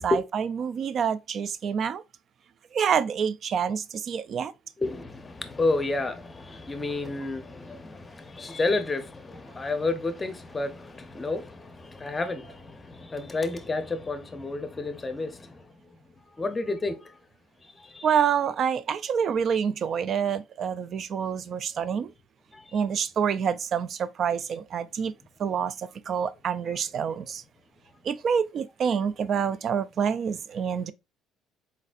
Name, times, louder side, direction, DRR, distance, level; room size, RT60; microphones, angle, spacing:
voice 1, 0.0-2.0 2.7-4.5 18.0-22.1 22.7-25.1 25.4-27.4 28.0-30.9, right 7 dB, 45° right, 0.3 m, -27 dB
voice 2, 4.8-15.6 16.4-17.1 17.8-18.1 22.5-22.8 26.7-26.8, left 3 dB, 20° left, 0.7 m, -30 dB
4.1 x 4.0 x 2.5 m
cardioid pair, 110°, 0 cm